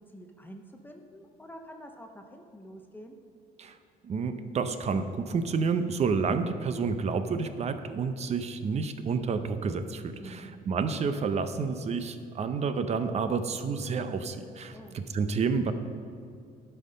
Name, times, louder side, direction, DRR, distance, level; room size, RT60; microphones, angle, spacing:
voice 1, 0.0-3.2 10.2-10.6 14.7-15.0, equal, 10° left, 3 dB, 0.7 m, -47 dB
voice 2, 4.0-14.8 15.1-15.7, right 5 dB, 40° right, 10 dB, 0.7 m, -29 dB
12.0 x 5.7 x 5.2 m, 2.3 s
cardioid pair, 110°, 17 cm